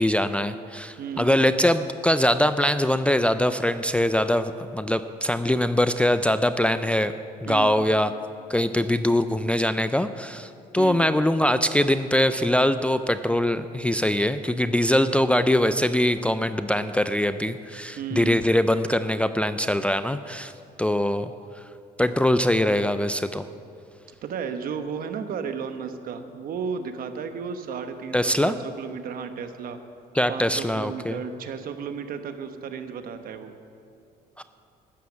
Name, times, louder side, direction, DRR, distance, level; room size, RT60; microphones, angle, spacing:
voice 1, 0.0-7.1 7.4-8.1 8.5-10.5 10.7-20.5 20.8-21.3 22.0-23.5 28.1-28.5 30.2-31.2 34.4-34.5, left 1 dB, 5° left, 10 dB, 0.4 m, -22 dB
voice 2, 1.0-1.4 7.4-7.8 10.8-11.1 18.0-18.4 24.2-29.8 30.3-33.5, right 6 dB, 60° right, 8 dB, 1.1 m, -33 dB
13.0 x 9.4 x 7.2 m, 2.5 s
cardioid pair, 110°, 17 cm